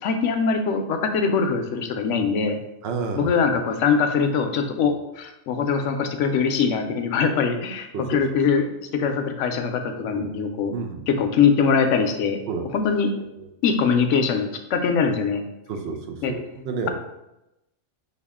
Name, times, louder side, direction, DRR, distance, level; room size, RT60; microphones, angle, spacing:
voice 1, 0.0-2.6 3.2-10.7 11.1-12.4 12.7-13.1 13.6-15.4 16.2-16.3, left 5 dB, 80° left, 6 dB, 0.9 m, -22 dB
voice 2, 2.8-3.4 7.9-8.4 10.1-10.4 10.7-11.0 12.5-12.7 15.7-16.9, right 4 dB, 65° right, 4 dB, 0.8 m, -30 dB
5.5 x 2.4 x 3.5 m, 0.90 s
omnidirectional pair, 1.3 m